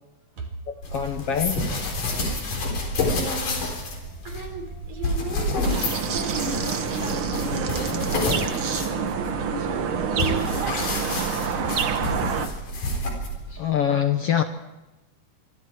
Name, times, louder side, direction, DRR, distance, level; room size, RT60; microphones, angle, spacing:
voice 1, 0.7-1.6 13.5-14.4, left 9 dB, 65° left, 7 dB, 1.6 m, -24 dB
sound 1, 0.8-13.6, left 2 dB, 80° left, 5.6 m, -29 dB
voice 2, 2.7-5.7 6.0-11.0 13.3-13.5, right 3 dB, 65° right, 5 dB, 5.2 m, -37 dB
sound 2, 5.6-12.5, right 6 dB, 50° right, 1.8 m, -27 dB
26.5 x 24.5 x 4.6 m, 1.0 s
omnidirectional pair, 3.7 m